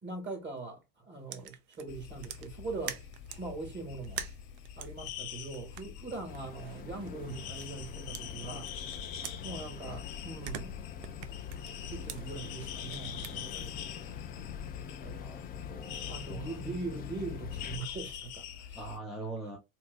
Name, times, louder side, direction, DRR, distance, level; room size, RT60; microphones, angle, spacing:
voice 1, 0.0-3.0 3.4-4.2 4.8-8.7 9.4-10.8 11.9-14.2 15.0-15.4 16.1-18.8, right 3 dB, 25° right, 2.0 m, -41 dB
sound 1, 1.3-3.5 4.0-7.9 8.1-10.0 10.2-13.4, right 9 dB, 75° right, 0.8 m, -46 dB
sound 2, 1.9-19.0, left 8 dB, 70° left, 1.0 m, -44 dB
sound 3, 6.3-17.8, left 8 dB, 25° left, 0.3 m, -45 dB
voice 2, 15.1-16.7 18.7-19.6, right 2 dB, ahead, 0.9 m, -43 dB
4.4 x 2.6 x 2.3 m
supercardioid pair, 115°, 40 cm